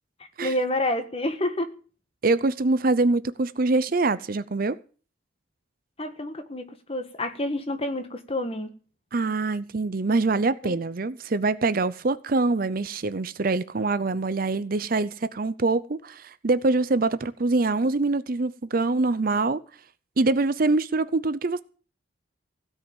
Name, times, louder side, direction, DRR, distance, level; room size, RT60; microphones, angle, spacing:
voice 1, 0.4-1.7 6.0-8.7 10.6-10.8, left 1 dB, 30° left, 1.5 m, -28 dB
voice 2, 2.2-4.8 9.1-19.6 20.2-21.6, right 3 dB, 45° right, 0.6 m, -24 dB
16.0 x 5.6 x 8.9 m
head